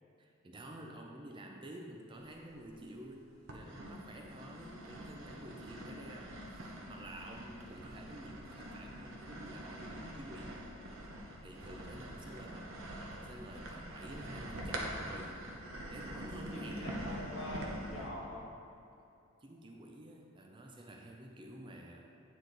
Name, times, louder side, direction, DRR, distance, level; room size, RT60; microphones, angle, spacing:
voice 1, 0.2-10.6 11.0-12.7 13.1-17.0 19.4-22.1, right 1 dB, 25° right, 1 dB, 0.5 m, -50 dB
sound 1, 2.2-2.9 3.5-18.1, right 1 dB, 70° right, 0.9 m, -45 dB
voice 2, 16.4-18.5, left 1 dB, 65° left, -5 dB, 1.7 m, -44 dB
9.1 x 4.6 x 4.0 m, 2.6 s
head